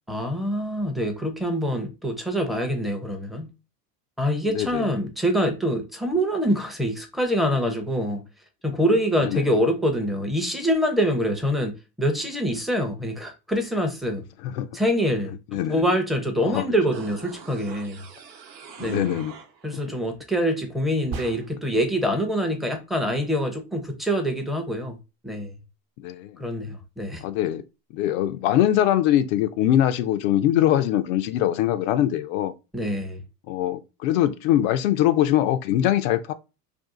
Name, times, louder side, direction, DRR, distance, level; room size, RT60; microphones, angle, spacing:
voice 1, 0.1-3.5 4.2-8.2 8.6-11.7 12.0-14.2 14.7-18.0 18.8-19.1 19.6-25.0 25.2-25.6 26.4-27.2 32.7-33.2, equal, ahead, 0.6 m, -25 dB
voice 2, 4.5-4.9 9.2-9.5 14.4-14.7 15.5-15.8 16.4-16.6 18.8-19.3 19.7-19.8 26.0-26.4 27.2-27.6 27.9-32.5 33.5-36.3, left 12 dB, 60° left, 0.5 m, -22 dB
sound 1, 16.9-19.9 20.2-20.3, right 6 dB, 85° right, 0.8 m, -44 dB
sound 2, 21.1-21.8, right 5 dB, 50° right, 0.9 m, -36 dB
2.6 x 2.5 x 3.6 m
hypercardioid pair, 100°, 49 cm